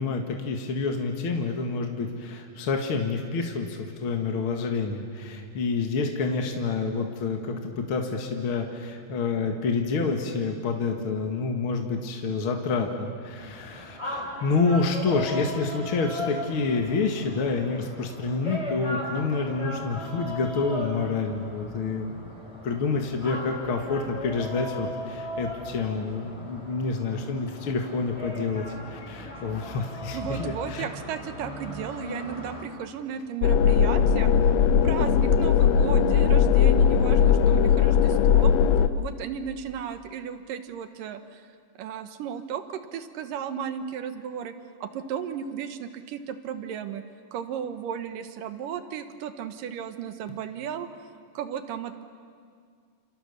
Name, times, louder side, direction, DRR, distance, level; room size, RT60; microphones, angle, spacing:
voice 1, 0.0-22.3 22.6-28.6 28.9-30.9, left 4 dB, 45° left, 3 dB, 2.0 m, -28 dB
sound 1, 13.4-32.6, left 1 dB, 10° left, 4.1 m, -37 dB
voice 2, 30.1-34.3 34.8-38.5 39.0-41.5 41.8-44.5 44.8-47.0 47.3-50.9 51.3-52.0, right 8 dB, 70° right, 9 dB, 2.7 m, -35 dB
sound 2, 33.4-38.9, left 7 dB, 85° left, 1.5 m, -19 dB
29.0 x 28.5 x 7.0 m, 2.1 s
omnidirectional pair, 4.3 m